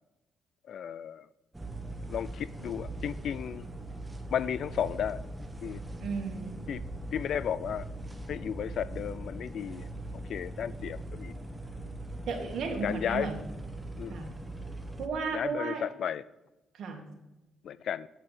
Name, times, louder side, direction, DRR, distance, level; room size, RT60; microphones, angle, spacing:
voice 1, 0.7-1.3 2.1-3.7 4.3-5.3 5.6-5.8 6.7-6.8 7.1-7.9 8.3-9.9 10.3-11.3 12.8-13.3 14.0-14.2 15.3-16.2 17.6-18.1, left 9 dB, 65° left, 18 dB, 0.4 m, -33 dB
sound 1, 1.5-15.1, right 1 dB, 10° right, 1.0 m, -41 dB
voice 2, 6.0-6.6 12.3-13.4 14.1-14.3 15.0-15.8 16.7-17.0, right 4 dB, 65° right, 2 dB, 2.3 m, -34 dB
9.9 x 5.5 x 6.8 m, 1.0 s
cardioid pair, 90°, 0 cm